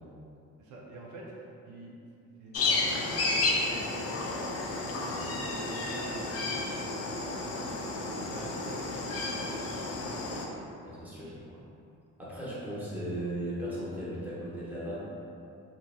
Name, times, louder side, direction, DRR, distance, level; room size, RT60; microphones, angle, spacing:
voice 1, 0.6-1.9 2.4-3.9 5.1-7.1 7.4-10.1 10.6-10.7 11.1-11.7, right 2 dB, 80° right, -4 dB, 0.5 m, -46 dB
sound 1, 2.5-10.5, left 2 dB, 55° left, 0.4 m, -32 dB
voice 2, 10.8-11.3 12.2-15.0, right 1 dB, 5° right, -9 dB, 0.9 m, -37 dB
2.9 x 2.6 x 2.2 m, 2.6 s
cardioid pair, 90°, 30 cm